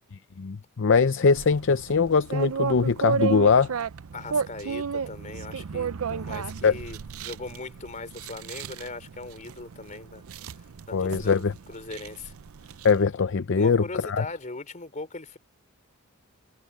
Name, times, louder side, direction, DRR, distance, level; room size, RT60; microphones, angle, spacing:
voice 1, 0.4-3.7 6.6-6.7 10.9-11.5 12.8-14.2, left 5 dB, 60° left, 0.6 m, -22 dB
sound 1, 1.3-13.0, right 5 dB, 75° right, 0.5 m, -33 dB
voice 2, 4.1-10.2 10.9-11.4 11.7-12.3 13.5-15.4, left 3 dB, 35° left, 3.5 m, -39 dB
head